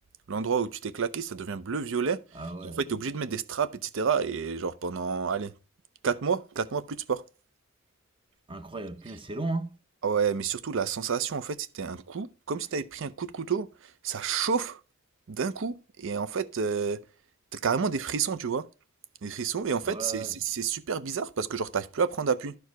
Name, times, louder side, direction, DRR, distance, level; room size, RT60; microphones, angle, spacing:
voice 1, 0.3-5.5 6.0-7.2 9.1-9.2 10.0-13.7 14.0-14.8 15.3-17.0 17.5-18.7 19.2-22.6, right 6 dB, 65° right, 0.6 m, -30 dB
voice 2, 2.3-2.8 8.5-9.7 19.8-20.4, right 3 dB, 25° right, 0.8 m, -35 dB
12.0 x 4.7 x 4.6 m
head